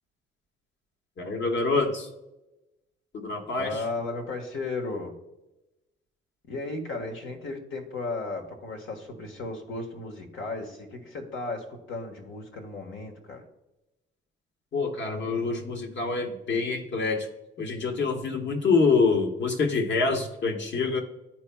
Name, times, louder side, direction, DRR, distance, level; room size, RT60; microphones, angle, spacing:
voice 1, 1.2-2.1 3.1-3.8 14.7-17.3 17.6-21.0, left 4 dB, 65° left, 2 dB, 1.4 m, -26 dB
voice 2, 3.6-5.1 6.5-13.4, left 3 dB, 80° left, 3 dB, 1.5 m, -35 dB
11.5 x 4.5 x 2.3 m, 0.96 s
cardioid pair, 90°, 20 cm